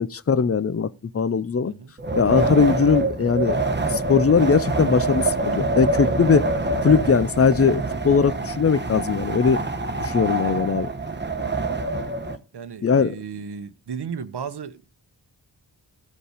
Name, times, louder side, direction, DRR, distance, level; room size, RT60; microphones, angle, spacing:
voice 1, 0.0-1.7 2.1-3.6 3.9-6.4 6.8-9.6 10.0-10.9 12.8-13.2, left 5 dB, 30° left, 0.6 m, -20 dB
Wind, 2.0-12.4, right 2 dB, 25° right, 1.0 m, -25 dB
voice 2, 12.5-14.9, right 6 dB, 60° right, 0.9 m, -35 dB
15.0 x 5.3 x 4.9 m
wide cardioid pair, 70°, 45 cm